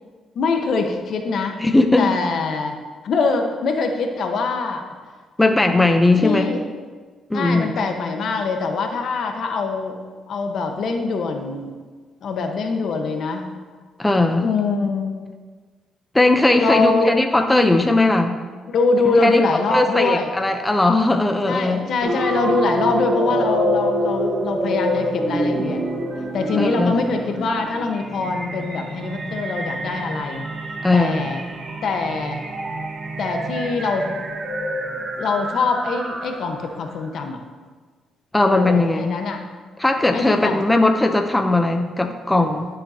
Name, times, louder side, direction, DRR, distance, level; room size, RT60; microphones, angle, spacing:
voice 1, 0.3-1.6 2.0-2.8 3.0-4.8 6.2-6.7 7.3-10.0 10.3-11.7 12.2-13.5 14.4-15.1 16.5-17.1 18.7-20.4 21.5-25.8 26.1-31.4 31.8-32.4 33.2-34.1 34.9-37.4 38.5-39.5 40.1-40.6, left 4 dB, 65° left, 4 dB, 1.2 m, -23 dB
voice 2, 1.6-2.1 5.4-6.5 7.3-7.8 14.0-14.5 16.1-18.3 19.1-19.4 19.7-21.8 26.6-26.9 30.8-31.3 38.3-39.1 39.8-42.7, left 2 dB, 10° left, 5 dB, 0.7 m, -18 dB
sound 1, 22.0-36.6, right 1 dB, 55° right, 1.6 m, -26 dB
16.5 x 7.7 x 2.9 m, 1.5 s
cardioid pair, 90°, 0 cm